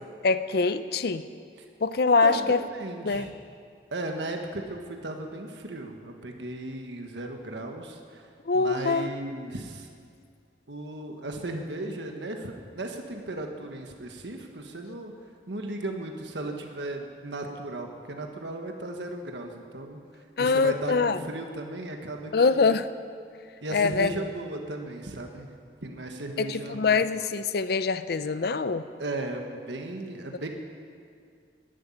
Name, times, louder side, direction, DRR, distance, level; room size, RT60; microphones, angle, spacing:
voice 1, 0.2-1.2 1.8-2.6 3.0-3.3 8.5-9.1 20.4-21.2 22.3-22.9 23.7-24.1 26.4-28.8, left 4 dB, 60° left, 13 dB, 0.5 m, -24 dB
voice 2, 2.2-3.3 3.9-9.9 10.7-15.1 15.5-22.6 23.6-25.5 25.8-27.0 29.0-30.5, right 2 dB, 90° right, 3 dB, 1.4 m, -36 dB
11.5 x 11.0 x 9.9 m, 2.2 s
head